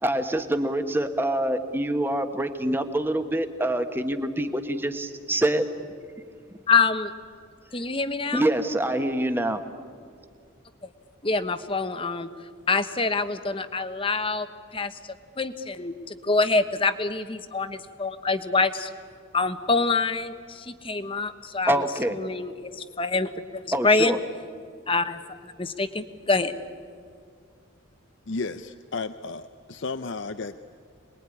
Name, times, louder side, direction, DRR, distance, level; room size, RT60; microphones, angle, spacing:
voice 1, 0.0-5.6 8.3-9.6 21.7-22.2 23.7-24.2, right 1 dB, 10° right, 7 dB, 1.3 m, -25 dB
voice 2, 6.7-7.1 7.7-8.4 11.2-12.3 12.7-14.5 14.7-15.0 15.4-18.9 19.3-21.7 22.1-24.2 24.9-26.5, left 3 dB, 25° left, 10 dB, 1.1 m, -26 dB
voice 3, 28.3-30.6, left 3 dB, 65° left, 10 dB, 0.7 m, -33 dB
27.5 x 21.0 x 9.9 m, 2.2 s
head